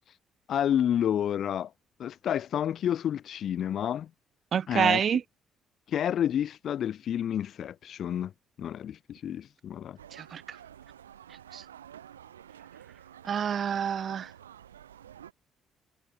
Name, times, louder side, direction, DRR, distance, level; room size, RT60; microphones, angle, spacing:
voice 1, 0.5-1.7 2.0-4.1 4.7-5.0 5.9-8.3 8.6-10.0, left 10 dB, 55° left, 1.3 m, -29 dB
voice 2, 4.5-5.2 10.2-10.4 11.5-11.6 13.2-14.3, right 8 dB, 50° right, 0.6 m, -27 dB
sound 1, 10.0-15.3, right 10 dB, 85° right, 6.3 m, -50 dB
figure-of-eight pair, 45°, 0 cm